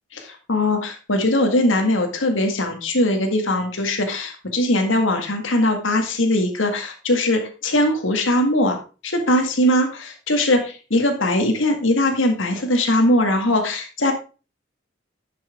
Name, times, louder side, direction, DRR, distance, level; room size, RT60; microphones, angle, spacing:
voice 1, 0.1-8.8 9.0-14.1, left 1 dB, 80° left, 4 dB, 1.9 m, -20 dB
10.5 x 6.1 x 3.5 m, 0.33 s
head